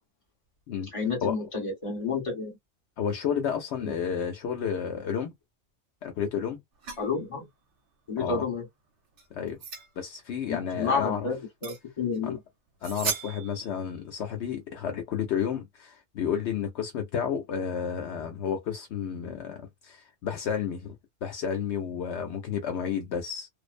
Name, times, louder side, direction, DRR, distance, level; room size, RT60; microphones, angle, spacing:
voice 1, 0.9-2.5 3.8-3.9 7.0-7.5 8.1-8.6 10.5-12.4, left 5 dB, 30° left, 1.2 m, -30 dB
voice 2, 3.0-5.3 6.0-6.6 8.2-8.4 9.3-9.6 10.0-11.3 12.2-12.4 12.8-20.9 21.2-23.5, left 7 dB, 70° left, 0.9 m, -31 dB
sound 1, 6.8-7.1 9.1-9.9 11.6-11.8 12.1-12.2 12.8-13.7, right 6 dB, 75° right, 1.1 m, -35 dB
2.5 x 2.0 x 2.5 m
omnidirectional pair, 1.2 m